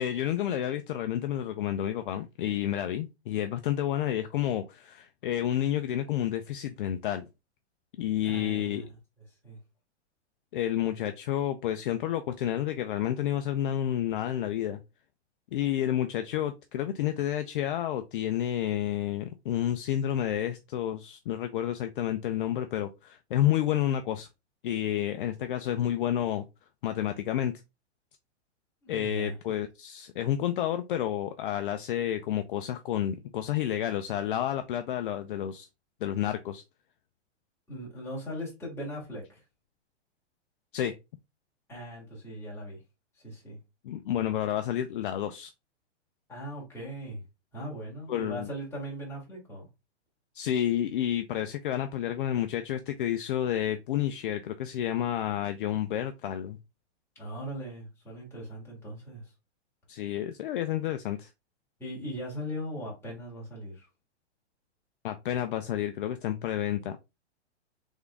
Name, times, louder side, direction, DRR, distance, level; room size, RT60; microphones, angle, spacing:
voice 1, 0.0-7.3 8.0-8.8 10.5-14.8 15.5-24.3 24.6-26.5 26.8-27.5 28.9-35.7 36.0-36.6 40.7-41.0 43.8-45.5 48.1-48.5 50.3-56.6 59.9-61.3 65.0-67.0, left 11 dB, 50° left, 0.4 m, -30 dB
voice 2, 8.2-8.8 9.4-9.6 28.8-29.4 37.7-39.4 41.7-42.8 43.2-43.6 46.3-47.2 47.5-49.7 57.2-59.3 61.8-63.9, equal, 5° left, 2.0 m, -39 dB
3.6 x 3.5 x 3.6 m
hypercardioid pair, 155°, 35 cm